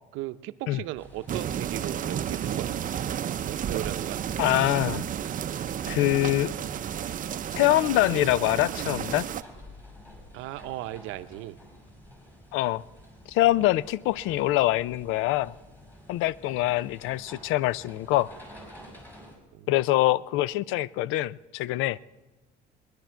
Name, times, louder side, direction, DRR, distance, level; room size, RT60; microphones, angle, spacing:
voice 1, 0.1-2.7 3.4-4.2 10.3-11.6 19.5-19.7, right 16 dB, 75° right, 11 dB, 0.7 m, -36 dB
sound 1, 0.9-19.4, equal, 10° left, 5.1 m, -50 dB
sound 2, 1.3-9.4, right 9 dB, 40° right, 0.6 m, -32 dB
voice 2, 4.4-5.0 5.9-6.5 7.5-9.3 12.5-12.8 13.3-15.5 16.1-18.3 19.7-22.0, left 16 dB, 75° left, 21 dB, 0.4 m, -24 dB
23.0 x 10.5 x 4.5 m, 1.1 s
cardioid pair, 95°, 21 cm